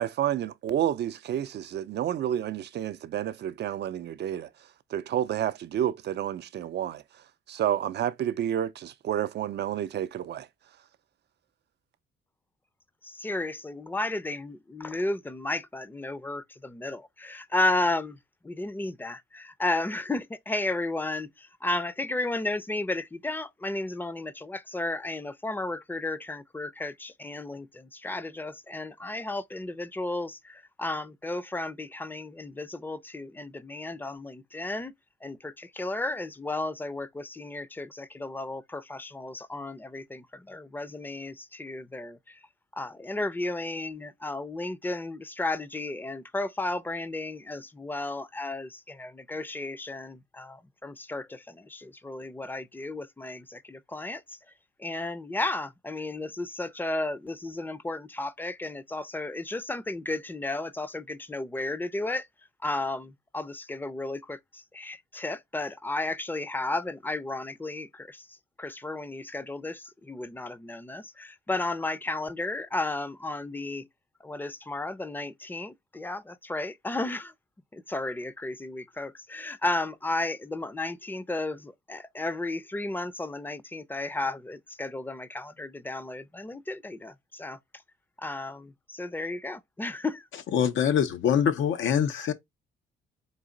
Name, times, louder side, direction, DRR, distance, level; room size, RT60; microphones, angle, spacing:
voice 1, 0.0-4.5 4.9-7.0 7.5-10.5, right 10 dB, 60° right, 0.5 m, -30 dB
voice 2, 13.0-18.2 18.4-34.9 35.2-42.4 42.7-54.4 54.8-62.3 62.6-68.3 68.6-73.9 74.2-77.3 77.7-87.6 88.2-90.3, left 2 dB, 10° left, 0.5 m, -33 dB
voice 3, 90.5-92.3, left 8 dB, 75° left, 0.8 m, -24 dB
4.0 x 2.8 x 3.8 m
cardioid pair, 90°, 20 cm